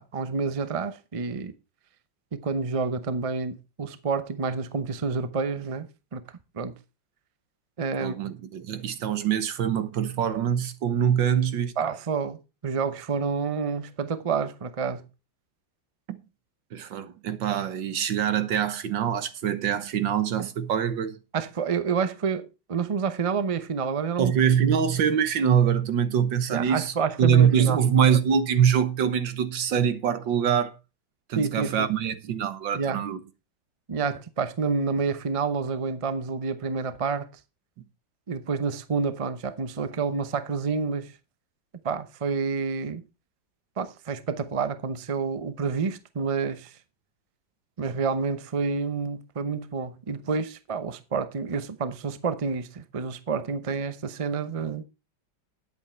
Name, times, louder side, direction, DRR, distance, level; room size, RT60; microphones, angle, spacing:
voice 1, 0.0-1.5 2.3-6.2 6.5-6.7 7.8-8.2 11.8-12.4 12.6-15.1 21.3-24.3 26.5-27.8 31.4-31.9 32.7-33.0 33.9-37.3 38.3-41.1 41.8-43.0 43.8-46.8 47.8-54.8, right 5 dB, 50° right, 0.4 m, -29 dB
voice 2, 8.0-11.7 16.7-21.2 24.2-26.9 27.2-30.8 31.3-33.2, right 8 dB, 75° right, 1.9 m, -24 dB
10.5 x 8.4 x 4.5 m
omnidirectional pair, 2.0 m